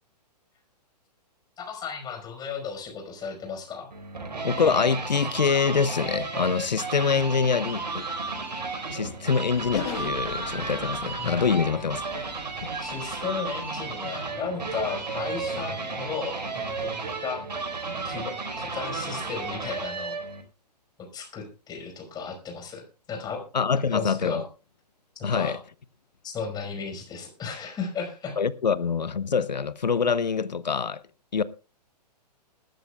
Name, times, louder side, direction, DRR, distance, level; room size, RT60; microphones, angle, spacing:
voice 1, 1.6-3.9 11.2-11.4 12.8-16.9 17.2-17.5 18.0-20.2 21.0-23.4 23.9-24.5 25.2-25.6 26.2-28.4, left 5 dB, 20° left, 5.2 m, -35 dB
sound 1, 3.9-20.4, right 4 dB, 80° right, 4.8 m, -33 dB
voice 2, 4.4-8.0 8.9-12.2 23.5-24.4 25.2-25.6 28.4-31.0 31.3-31.4, left 5 dB, 90° left, 0.8 m, -25 dB
sound 2, 9.5-13.3, left 7 dB, 40° left, 2.8 m, -40 dB
20.5 x 13.0 x 2.4 m
hypercardioid pair, 125°, 21 cm